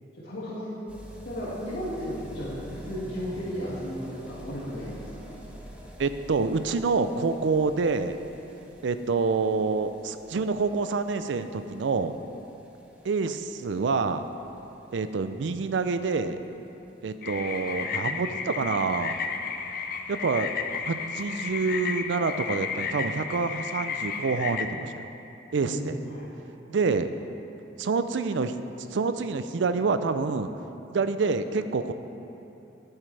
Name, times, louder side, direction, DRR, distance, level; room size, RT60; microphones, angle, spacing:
voice 1, 0.2-0.7 1.2-5.4 25.6-26.2, equal, 75° left, -12 dB, 2.1 m, -34 dB
sound 1, 0.9-17.7 17.9-18.0 18.2-18.3 18.5-18.6 18.9-19.0 19.7-19.8, equal, 5° right, 0.9 m, -47 dB
voice 2, 6.0-8.2 8.8-12.1 13.0-14.2 14.9-16.4 17.0-19.2 20.1-20.5 20.8-25.0 25.5-26.0 26.7-27.1 27.8-28.5 28.9-30.5 30.9-31.9, right 4 dB, 80° right, 10 dB, 0.4 m, -27 dB
sound 2, 17.2-24.6, left 6 dB, 50° left, 0.5 m, -33 dB
11.0 x 9.0 x 3.3 m, 2.9 s
head